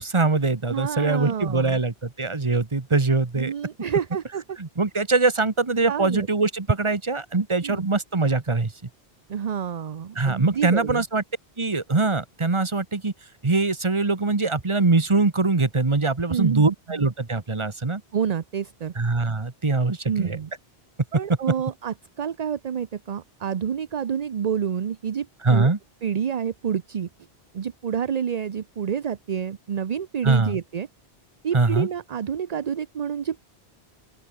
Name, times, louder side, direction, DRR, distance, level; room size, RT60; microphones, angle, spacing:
voice 1, 0.0-3.5 4.6-8.7 10.1-11.2 11.6-13.1 13.4-18.0 18.9-20.4 25.4-25.8 30.2-30.6 31.5-31.9, right 3 dB, 30° right, 1.3 m, -22 dB
voice 2, 0.7-1.8 3.4-4.4 5.9-6.3 7.6-7.9 9.3-11.0 16.3-16.6 16.9-17.0 18.1-18.9 20.1-20.5 21.1-25.7 26.0-27.1 27.5-30.9 31.4-33.6, right 8 dB, 45° right, 0.7 m, -28 dB
open air
omnidirectional pair, 1.1 m